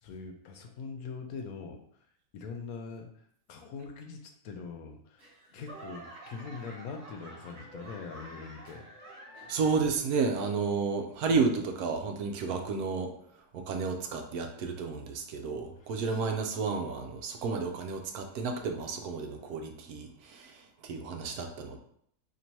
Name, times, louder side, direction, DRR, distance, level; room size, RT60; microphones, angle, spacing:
voice 1, 0.0-1.8 2.3-8.9 15.8-16.0, left 5 dB, 75° left, 4 dB, 1.0 m, -43 dB
Laughter / Clapping / Crowd, 5.2-10.0 10.3-10.8 11.4-11.5, right 2 dB, 60° right, 1.4 m, -49 dB
voice 2, 9.5-13.1 13.5-21.8, right 4 dB, 75° right, 4 dB, 1.1 m, -31 dB
2.9 x 2.7 x 4.4 m, 0.67 s
omnidirectional pair, 1.6 m